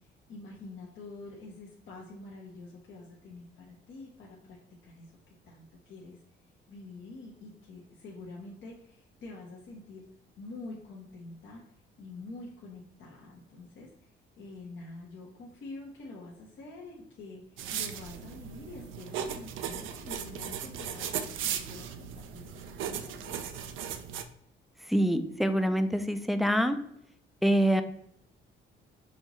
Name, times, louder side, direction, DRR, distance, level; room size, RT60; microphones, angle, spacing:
voice 1, 0.0-4.6 4.8-6.2 6.7-10.0 10.4-23.4, left 3 dB, 70° left, -4 dB, 1.0 m, -47 dB
sound 1, 17.6-24.2, right 8 dB, 80° right, 0.5 m, -37 dB
voice 2, 24.9-26.8 27.4-27.8, equal, ahead, 8 dB, 0.4 m, -25 dB
5.5 x 2.7 x 3.0 m, 0.75 s
cardioid pair, 90°, 20 cm